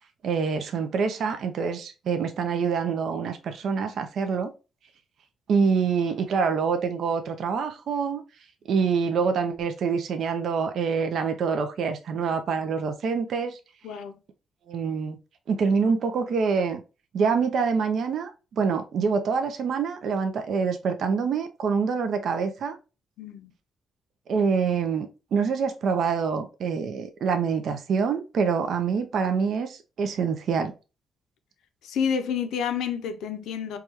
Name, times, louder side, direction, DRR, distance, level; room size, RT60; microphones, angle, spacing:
voice 1, 0.2-4.5 5.5-8.2 8.7-13.6 14.7-15.2 15.5-16.8 17.1-22.7 24.3-30.7, right 5 dB, 65° right, 0.5 m, -26 dB
voice 2, 13.8-14.2 23.2-23.5 31.8-33.8, left 7 dB, 80° left, 0.6 m, -29 dB
4.7 x 2.3 x 2.8 m
cardioid pair, 90°, 0 cm